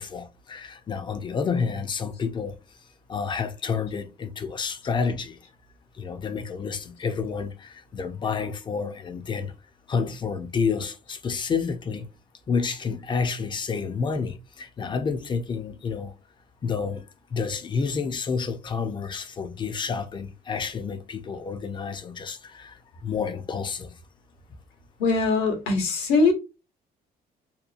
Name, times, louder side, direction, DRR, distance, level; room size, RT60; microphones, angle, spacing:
voice 1, 0.0-2.6 3.1-5.4 6.0-9.5 9.9-12.1 12.5-16.1 16.6-24.0, left 5 dB, 30° left, 0.4 m, -29 dB
voice 2, 25.0-26.3, left 3 dB, 85° left, 1.0 m, -21 dB
2.8 x 2.2 x 2.4 m
cardioid pair, 110°, 17 cm